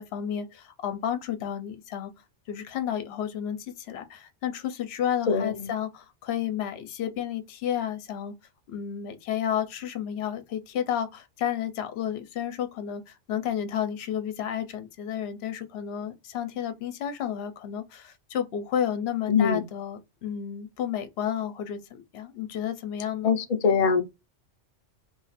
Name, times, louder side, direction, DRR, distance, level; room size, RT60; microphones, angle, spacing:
voice 1, 0.0-2.1 2.5-8.3 8.7-23.4, left 9 dB, 70° left, 0.9 m, -31 dB
voice 2, 19.3-19.6 23.2-24.0, left 6 dB, 40° left, 0.6 m, -22 dB
2.5 x 2.4 x 4.1 m
omnidirectional pair, 1.2 m